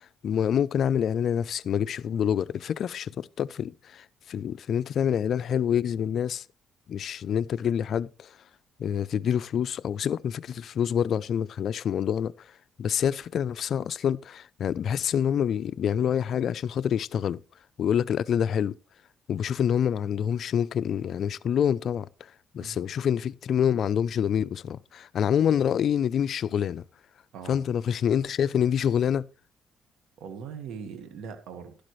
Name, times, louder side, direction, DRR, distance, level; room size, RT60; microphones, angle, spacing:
voice 1, 0.0-6.4 6.9-8.3 8.8-12.3 12.8-17.4 17.8-18.7 19.3-22.1 22.5-26.8 27.5-29.2, left 8 dB, 65° left, 0.4 m, -26 dB
voice 2, 30.2-31.8, right 6 dB, 85° right, 1.5 m, -40 dB
12.0 x 11.5 x 3.2 m
cardioid pair, 90°, 0 cm